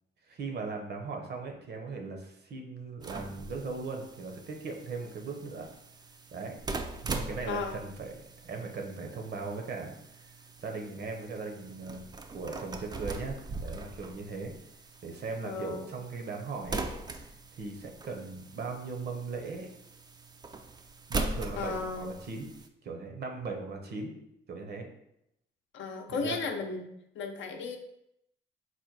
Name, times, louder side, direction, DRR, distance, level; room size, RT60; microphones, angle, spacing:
voice 1, 0.3-5.7 6.3-6.6 7.0-8.1 8.4-10.0 10.6-12.0 12.3-14.5 15.0-16.8 17.6-19.7 21.1-22.5 22.8-24.1 24.5-24.9 26.1-26.4, right 4 dB, 55° right, 3 dB, 0.8 m, -38 dB
sound 1, 3.0-22.7, right 3 dB, 20° right, 0.3 m, -41 dB
voice 2, 15.4-15.9 21.6-22.1 25.7-26.8 27.2-27.8, left 4 dB, 70° left, 4 dB, 0.6 m, -34 dB
4.1 x 2.2 x 4.5 m, 0.81 s
cardioid pair, 90°, 20 cm